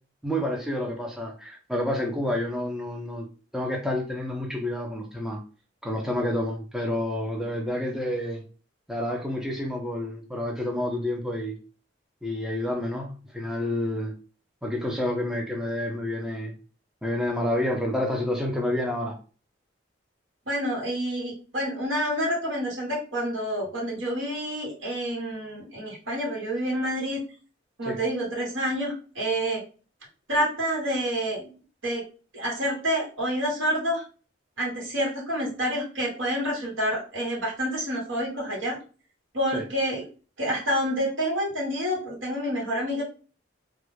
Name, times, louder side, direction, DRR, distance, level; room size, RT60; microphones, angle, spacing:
voice 1, 0.2-3.3 3.5-5.4 5.8-8.4 8.9-11.6 12.2-14.1 14.6-16.5 17.0-19.2 27.8-28.0 39.5-39.6, left 1 dB, 5° right, 0.3 m, -29 dB
voice 2, 20.5-27.2 27.8-29.6 30.3-31.5 31.8-32.0 32.3-34.0 34.6-38.8 39.3-40.0 40.4-43.0, equal, 85° right, 1.1 m, -28 dB
2.3 x 2.1 x 3.1 m
head